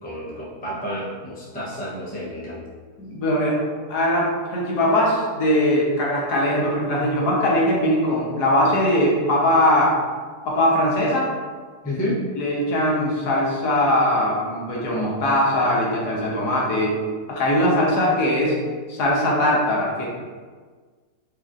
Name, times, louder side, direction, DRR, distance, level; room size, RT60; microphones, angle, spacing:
voice 1, 0.0-2.6 11.8-12.2, equal, 10° left, -7 dB, 0.4 m, -30 dB
voice 2, 3.0-3.6 3.9-10.0 10.5-11.3 12.4-17.0 17.3-18.6 18.9-20.1, left 1 dB, 85° left, -4 dB, 1.4 m, -20 dB
4.9 x 2.8 x 2.4 m, 1.5 s
omnidirectional pair, 1.7 m